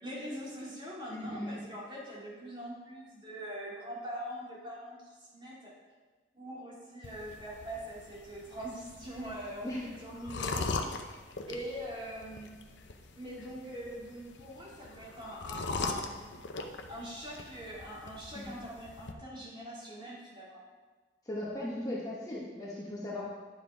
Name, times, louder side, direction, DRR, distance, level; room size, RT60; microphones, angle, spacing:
voice 1, 0.0-5.7 6.3-10.7 11.5-12.5 13.1-16.5 16.9-20.6, equal, 25° right, -6 dB, 2.3 m, -43 dB
voice 2, 1.1-1.6 9.6-9.8 18.3-18.5 21.2-23.3, left 1 dB, 20° left, -6 dB, 1.2 m, -37 dB
sound 1, 7.0-19.1, left 3 dB, 80° left, 0.7 m, -41 dB
9.8 x 7.2 x 3.5 m, 1.3 s
head